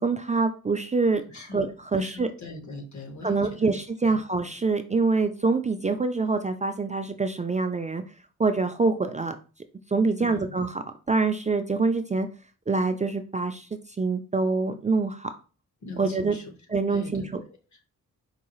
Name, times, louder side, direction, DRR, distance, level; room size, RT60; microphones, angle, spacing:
voice 1, 0.0-1.2 1.5-2.3 3.2-8.0 8.4-9.4 9.9-12.3 12.7-13.7 14.0-15.3 16.0-16.3 16.7-17.4, right 3 dB, 25° right, 7 dB, 0.3 m, -25 dB
voice 2, 1.3-1.6 2.0-3.7 4.0-4.2 10.2-10.5 15.8-16.4 16.9-17.8, left 2 dB, 60° left, 3 dB, 1.2 m, -41 dB
4.6 x 2.3 x 3.0 m, 0.35 s
cardioid pair, 75°, 32 cm